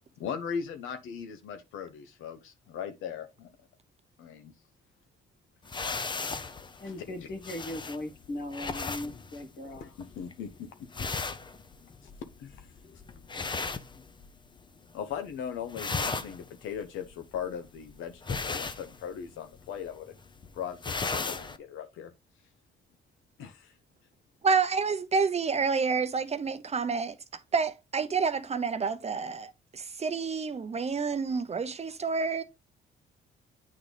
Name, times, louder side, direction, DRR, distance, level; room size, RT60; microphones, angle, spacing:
voice 1, 0.2-3.5 4.2-4.5 6.0-6.4 6.8-7.3 9.8-10.7 12.4-12.7 14.9-20.2 20.5-22.1 23.4-23.7, left 7 dB, 90° left, 1.0 m, -39 dB
sound 1, 5.6-14.6 14.9-15.3 15.6-21.6, left 4 dB, 25° left, 0.6 m, -37 dB
voice 2, 6.8-9.9, left 1 dB, 60° left, 1.6 m, -38 dB
voice 3, 24.4-27.1 27.5-32.4, right 5 dB, 35° right, 0.6 m, -29 dB
8.6 x 3.8 x 3.2 m
cardioid pair, 90°, 20 cm